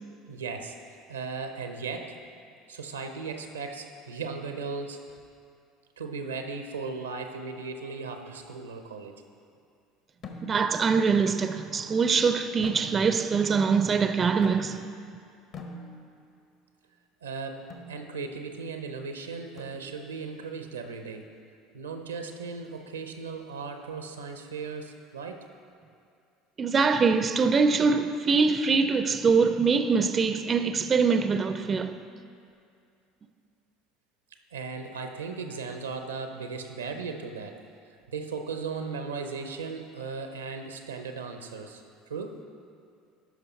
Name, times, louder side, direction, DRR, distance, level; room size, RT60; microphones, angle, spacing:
voice 1, 0.3-0.8 1.1-2.2 2.7-5.0 6.0-9.2 17.2-21.3 21.7-25.5 34.5-37.6 38.1-42.4, right 4 dB, 90° right, 0.6 m, -37 dB
sound 1, 10.2-10.9 12.6-13.4 14.4-15.0 15.5-16.3 17.7-18.0 19.6-20.2, left 2 dB, 50° left, 1.1 m, -44 dB
voice 2, 10.5-14.8 26.6-32.0, right 5 dB, 35° right, 0.4 m, -23 dB
12.5 x 5.3 x 4.1 m
hypercardioid pair, 70°, 0 cm